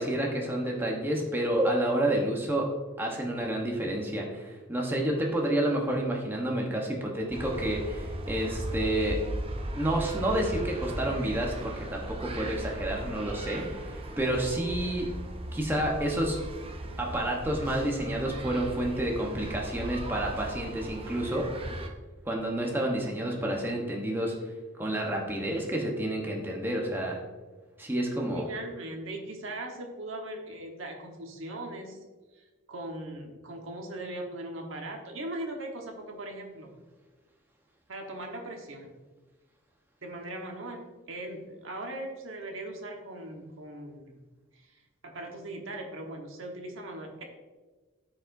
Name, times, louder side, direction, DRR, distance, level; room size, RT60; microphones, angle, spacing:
voice 1, 0.0-2.7 3.0-9.2 9.8-13.6 14.2-15.1 15.5-16.4 17.0-21.5 22.3-24.3 24.8-27.2 27.8-28.5, right 1 dB, 10° right, -1 dB, 1.0 m, -29 dB
sound 1, 7.3-21.9, right 1 dB, 25° right, 0.7 m, -37 dB
voice 2, 28.3-32.0 32.3-36.7 37.9-38.9 40.0-44.2 44.5-44.7 45.0-47.2, right 1 dB, 75° right, 2 dB, 1.3 m, -39 dB
13.0 x 4.9 x 2.6 m, 1.3 s
head